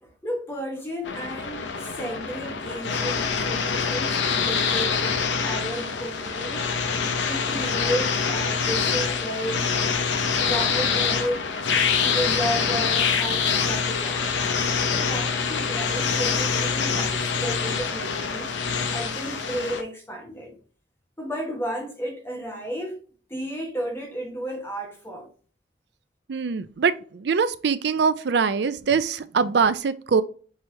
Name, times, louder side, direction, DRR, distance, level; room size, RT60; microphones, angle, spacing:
voice 1, 0.0-6.7 7.2-9.7 10.4-14.3 14.9-18.6 18.9-20.6 21.2-23.0 23.3-25.3, equal, 15° left, 1.1 m, -33 dB
sound 1, 1.1-19.8, left 5 dB, 80° left, 0.7 m, -25 dB
voice 2, 26.3-30.2, right 5 dB, 65° right, 0.4 m, -23 dB
6.0 x 3.2 x 2.8 m
head